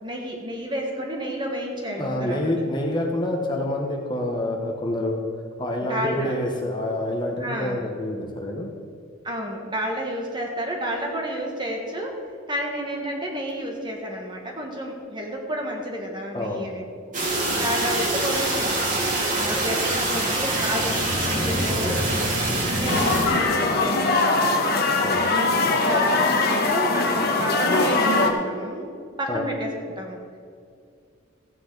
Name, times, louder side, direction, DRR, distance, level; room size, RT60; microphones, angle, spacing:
voice 1, 0.0-2.6 5.9-6.4 7.4-7.9 9.2-16.8 17.5-20.9 21.2-22.0 22.8-24.6 25.3-28.9 29.2-30.2, equal, 20° right, 0 dB, 1.6 m, -31 dB
voice 2, 2.0-5.2 5.6-8.7 16.3-16.7 17.5-17.6 25.0-25.3 29.3-29.5, left 1 dB, 20° left, 0 dB, 1.2 m, -27 dB
sound 1, 17.1-23.3, right 2 dB, 40° right, 2.3 m, -24 dB
sound 2, 22.9-28.3, left 3 dB, 50° left, 1.2 m, -21 dB
15.0 x 9.1 x 4.0 m, 2.3 s
head